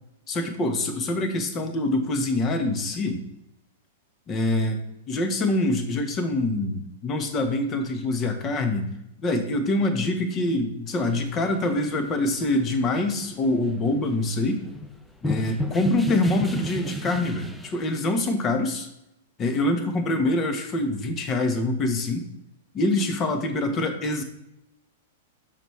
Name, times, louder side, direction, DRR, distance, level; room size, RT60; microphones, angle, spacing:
voice 1, 0.3-3.2 4.3-4.8 5.1-8.9 9.2-14.6 15.2-18.9 19.4-22.2 22.7-24.2, left 2 dB, 30° left, 6 dB, 1.2 m, -25 dB
sound 1, 11.0-17.9, left 1 dB, 5° left, 0.6 m, -33 dB
6.6 x 5.9 x 3.2 m, 0.83 s
figure-of-eight pair, 105°, 0 cm